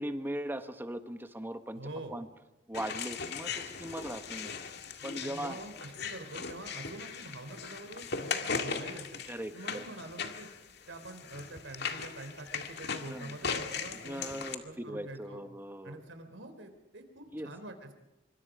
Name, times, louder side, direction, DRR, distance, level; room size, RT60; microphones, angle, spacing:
voice 1, 0.0-1.8 2.1-2.3 2.7-4.5 5.0-5.6 9.3-9.9 13.0-13.4 14.0-16.0 17.3-17.5, right 1 dB, 10° right, 8 dB, 1.4 m, -39 dB
voice 2, 1.7-2.1 5.2-9.1 9.5-10.5 10.9-15.4 15.8-17.9, right 2 dB, 85° right, 7 dB, 3.7 m, -45 dB
Man in a cave, 2.7-14.5, left 5 dB, 60° left, 2.0 m, -38 dB
25.5 x 25.0 x 5.1 m, 1.0 s
head